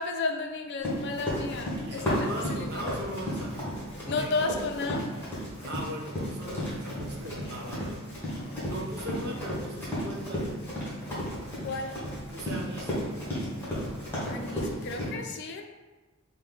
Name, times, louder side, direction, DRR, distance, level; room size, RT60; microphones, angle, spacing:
voice 1, 0.0-2.8 4.1-5.4 11.6-12.0 14.3-15.6, left 3 dB, 55° left, 4 dB, 0.4 m, -33 dB
Run, 0.8-15.1, equal, 10° left, 1.3 m, -33 dB
voice 2, 1.8-3.7 4.0-4.3 5.6-8.0 8.6-10.5 12.3-12.9, equal, 50° right, 0 dB, 0.7 m, -38 dB
5.3 x 2.2 x 3.8 m, 1.2 s
head